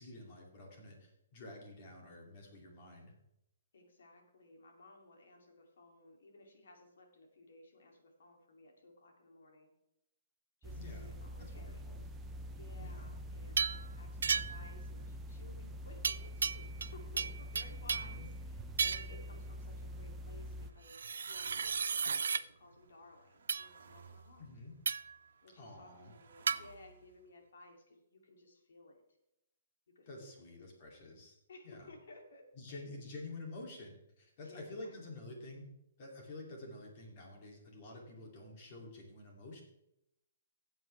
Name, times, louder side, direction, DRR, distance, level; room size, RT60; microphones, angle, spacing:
voice 1, 0.0-3.1 10.7-12.0 12.8-13.1 17.9-18.3 24.4-24.7 25.6-26.1 30.1-31.4 31.6-31.9 32.6-35.7 36.0-39.6, left 2 dB, 30° left, 0 dB, 2.6 m, -49 dB
voice 2, 3.7-9.7 10.6-11.9 12.5-24.5 25.4-29.0 29.9-30.3 31.5-33.2 34.4-35.1, left 2 dB, 75° left, 2 dB, 2.7 m, -58 dB
sound 1, 10.6-20.7, equal, 10° right, 0.6 m, -45 dB
sound 2, 13.6-13.8 14.2-14.7 16.0-16.9 17.2-18.2 18.8-19.2 20.9-22.4 23.5-23.7 24.8-25.2 26.5-26.6, right 6 dB, 90° right, 0.3 m, -34 dB
sound 3, 19.5-27.4, right 5 dB, 65° right, 1.4 m, -62 dB
14.0 x 8.0 x 3.3 m, 0.85 s
hypercardioid pair, 170°, 0 cm